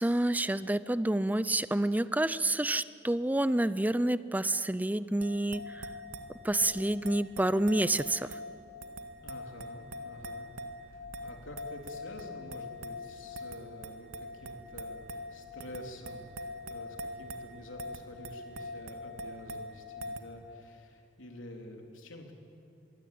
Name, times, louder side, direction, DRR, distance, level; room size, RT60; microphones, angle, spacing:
voice 1, 0.0-5.9 6.4-8.3, right 1 dB, 10° right, 15 dB, 0.6 m, -28 dB
sound 1, 5.2-20.2, left 1 dB, 85° right, 1.8 m, -43 dB
voice 2, 9.2-10.5 10.9-22.3, left 1 dB, 80° left, 2 dB, 3.6 m, -48 dB
25.0 x 22.5 x 8.7 m, 2.6 s
head